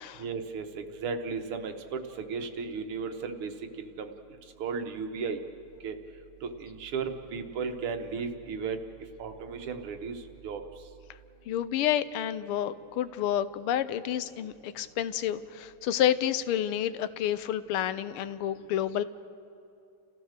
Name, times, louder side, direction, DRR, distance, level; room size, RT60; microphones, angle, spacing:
voice 1, 0.2-3.5 3.8-4.1 4.6-5.4 5.8-6.0 6.4-8.8 9.2-10.6, right 5 dB, 85° right, 6 dB, 2.1 m, -35 dB
voice 2, 11.5-19.0, left 11 dB, 80° left, 14 dB, 1.6 m, -29 dB
30.0 x 15.0 x 6.6 m, 2.7 s
omnidirectional pair, 2.4 m